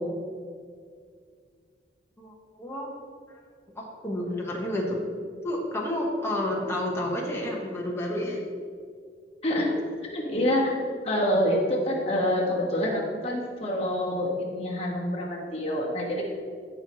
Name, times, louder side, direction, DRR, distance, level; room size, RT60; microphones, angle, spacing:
voice 1, 2.6-2.9 3.3-3.4 3.7-5.0 5.4-8.4, left 1 dB, 15° left, -3 dB, 1.3 m, -30 dB
voice 2, 9.4-9.8 10.1-10.8 11.0-16.3, left 1 dB, 35° left, -3 dB, 1.6 m, -26 dB
14.0 x 5.6 x 3.1 m, 2.1 s
head